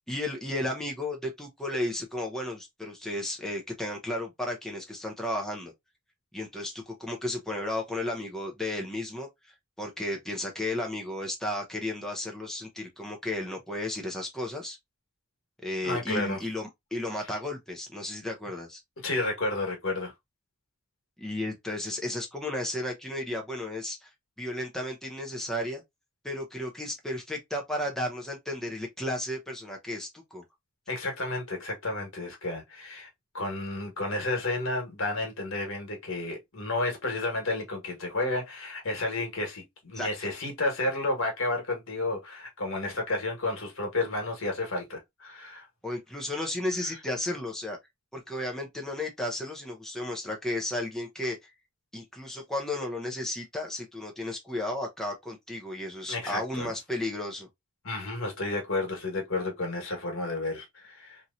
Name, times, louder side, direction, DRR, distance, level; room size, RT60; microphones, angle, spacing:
voice 1, 0.1-5.7 6.3-14.8 15.6-18.8 21.2-24.1 24.4-25.8 26.2-30.4 39.9-40.1 45.8-47.8 48.1-51.5 51.9-57.5, left 1 dB, ahead, 0.7 m, -33 dB
voice 2, 15.8-16.4 19.0-20.1 30.9-33.1 33.3-45.6 56.1-56.7 57.8-61.2, left 2 dB, 70° left, 1.4 m, -31 dB
3.0 x 2.7 x 2.5 m
head